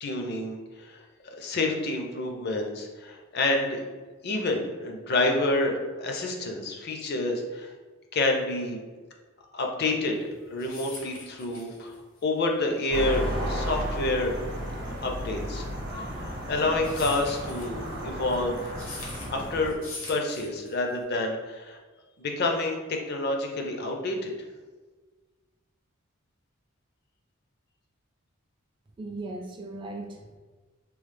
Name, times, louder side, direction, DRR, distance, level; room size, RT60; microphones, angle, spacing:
voice 1, 0.0-3.8 4.2-7.7 8.1-8.8 9.5-14.4 14.8-15.7 16.2-17.8 18.0-18.7 19.3-19.8 20.1-21.8 22.2-24.3, left 2 dB, 50° left, 3 dB, 0.4 m, -28 dB
sound 1, 10.2-21.0, left 3 dB, 75° left, 0.8 m, -44 dB
sound 2, 12.9-19.7, equal, 55° right, 0.7 m, -33 dB
voice 2, 29.0-30.4, right 2 dB, 25° right, 1 dB, 0.3 m, -38 dB
3.0 x 2.0 x 3.2 m, 1.3 s
head